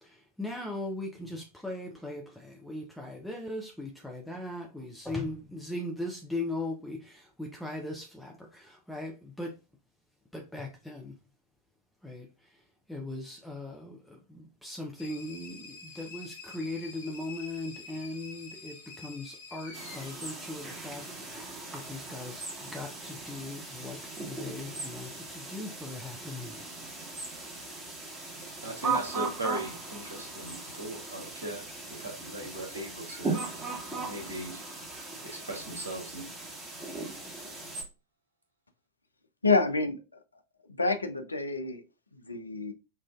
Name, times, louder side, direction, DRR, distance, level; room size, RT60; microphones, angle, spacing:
voice 1, 0.0-9.5 10.3-11.1 12.0-12.3 12.9-26.6, left 2 dB, ahead, 0.5 m, -39 dB
sound 1, 15.0-21.4, left 4 dB, 55° left, 0.9 m, -48 dB
sound 2, 19.7-37.8, right 3 dB, 15° right, 1.4 m, -38 dB
voice 2, 28.6-34.6 35.0-36.3, right 1 dB, 70° right, 1.4 m, -39 dB
voice 3, 39.4-40.0 40.8-41.8 42.3-42.7, left 3 dB, 80° left, 0.5 m, -27 dB
5.5 x 2.5 x 2.4 m
figure-of-eight pair, 90°, 0 cm